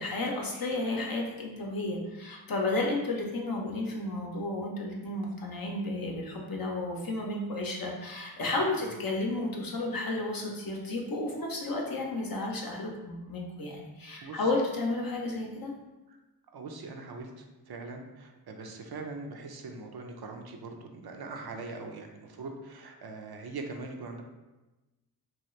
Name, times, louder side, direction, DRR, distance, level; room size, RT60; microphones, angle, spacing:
voice 1, 0.0-15.7, left 2 dB, 65° left, -1 dB, 0.6 m, -32 dB
voice 2, 14.2-14.5 16.5-24.2, right 3 dB, 75° right, 3 dB, 0.5 m, -42 dB
2.9 x 2.3 x 3.0 m, 1.1 s
wide cardioid pair, 55°, 38 cm